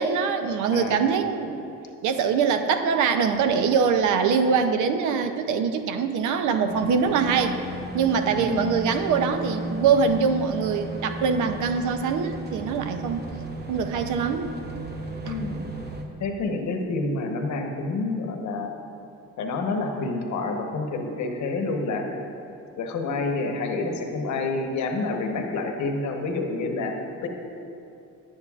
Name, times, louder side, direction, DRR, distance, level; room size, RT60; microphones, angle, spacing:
voice 1, 0.0-1.7 2.0-7.6 7.9-13.3 13.7-14.5 15.3-15.4, right 6 dB, 80° right, 8 dB, 0.6 m, -23 dB
voice 2, 0.7-1.1 8.3-8.7 15.2-15.7 16.2-18.8 19.4-22.2 22.8-26.9 27.2-27.3, left 3 dB, 70° left, 3 dB, 1.0 m, -28 dB
sound 1, 6.7-16.0, right 1 dB, 35° right, 0.9 m, -35 dB
10.5 x 8.8 x 2.4 m, 2.7 s
cardioid pair, 90°, 30 cm